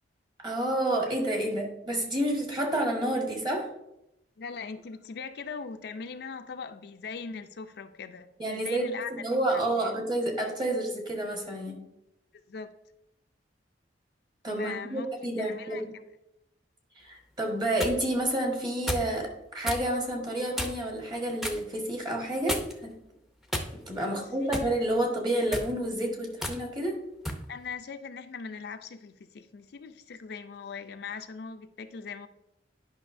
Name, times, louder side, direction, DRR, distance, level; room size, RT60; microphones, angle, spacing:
voice 1, 0.4-3.7 8.4-11.8 14.4-15.9 17.0-23.0 23.7-27.0, right 1 dB, 25° right, 1 dB, 1.4 m, -29 dB
voice 2, 4.4-9.1 9.5-9.6 12.5-12.7 14.6-15.1 15.4-15.8 24.1-24.5 27.5-32.3, left 5 dB, 60° left, 8 dB, 0.4 m, -40 dB
sound 1, 17.4-18.0 18.9-19.1 19.6-19.9 20.5-20.9 21.4-21.6 22.5-22.9 23.5-24.0 24.5-24.7 25.4-25.7 26.4-26.6 27.2-27.4, left 1 dB, ahead, 0.6 m, -33 dB
10.5 x 5.5 x 2.6 m, 0.85 s
head